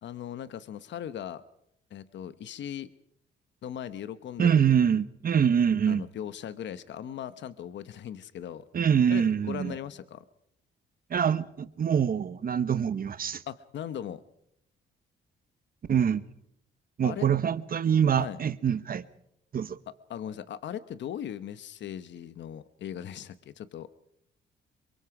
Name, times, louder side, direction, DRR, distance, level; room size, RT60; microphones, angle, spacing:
voice 1, 0.0-1.4 1.9-2.9 3.6-4.8 5.9-8.6 9.1-10.2 13.5-14.2 17.0-17.3 18.1-18.4 19.9-23.9, left 10 dB, 65° left, 1.0 m, -38 dB
voice 2, 4.4-6.1 8.7-9.7 11.1-13.4 15.9-16.2 17.0-19.0 19.5-19.8, right 8 dB, 45° right, 1.2 m, -25 dB
26.5 x 23.0 x 4.9 m
cardioid pair, 90°, 20 cm